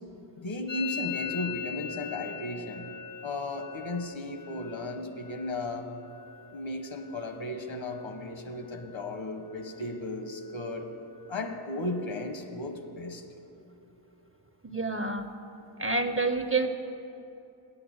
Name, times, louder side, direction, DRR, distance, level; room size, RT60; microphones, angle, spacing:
voice 1, 0.4-2.9 3.2-5.9 6.5-10.9 11.3-13.2, left 2 dB, 70° left, 6 dB, 1.1 m, -35 dB
Musical instrument, 0.7-8.3 8.6-9.2 9.4-10.0 10.3-12.3, left 8 dB, 45° left, 0.4 m, -42 dB
voice 2, 14.6-15.3 15.8-16.7, right 3 dB, 30° right, 8 dB, 0.5 m, -28 dB
8.3 x 7.8 x 7.7 m, 2.9 s
wide cardioid pair, 70°, 49 cm